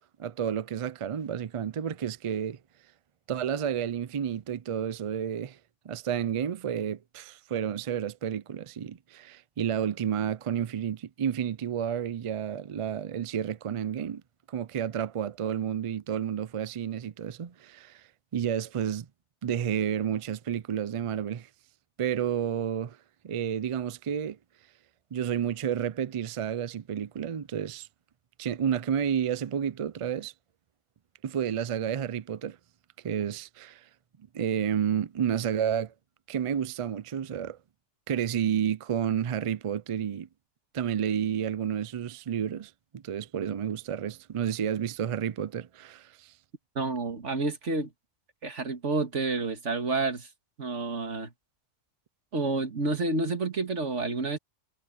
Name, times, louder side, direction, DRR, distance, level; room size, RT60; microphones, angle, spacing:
voice 1, 0.2-2.6 3.3-5.6 5.8-14.2 14.5-18.0 18.3-19.1 19.4-21.5 22.0-23.0 23.2-24.4 25.1-27.9 28.4-30.3 31.2-32.6 33.0-33.8 34.3-35.9 36.3-37.6 38.1-40.3 40.7-46.3, right 8 dB, 60° right, 0.3 m, -30 dB
voice 2, 46.8-47.9 48.4-50.3 50.6-51.3 52.3-54.4, right 3 dB, 75° right, 2.3 m, -29 dB
omnidirectional pair, 1.3 m